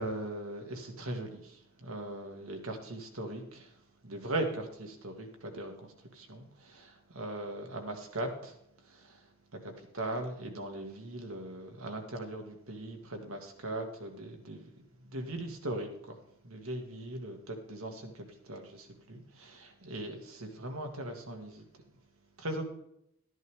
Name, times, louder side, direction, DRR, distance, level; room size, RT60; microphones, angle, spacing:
voice 1, 0.0-3.7 4.0-8.5 8.9-9.2 9.6-16.2 16.4-21.6 22.4-22.6, right 1 dB, 75° right, 4 dB, 2.1 m, -39 dB
13.0 x 10.5 x 3.6 m, 0.76 s
head